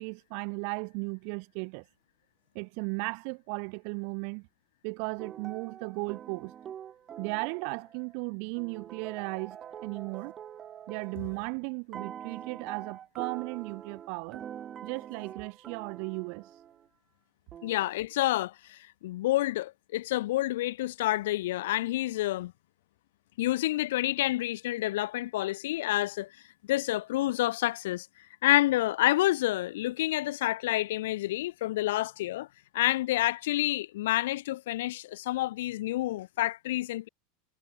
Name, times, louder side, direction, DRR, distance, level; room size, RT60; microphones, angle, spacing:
voice 1, 0.0-1.8 2.5-4.5 4.8-6.5 7.2-10.3 10.9-14.4 14.8-16.5, right 40 dB or more, 50° right, 2.2 m, -36 dB
sound 1, 5.2-8.1 8.6-11.5 11.9-16.9 17.5-17.9, right 9 dB, 25° right, 3.7 m, -45 dB
voice 2, 17.6-22.5 23.4-26.3 26.7-28.1 28.4-32.5 32.7-37.1, left 16 dB, 75° left, 1.2 m, -28 dB
supercardioid pair, 160°, 0 cm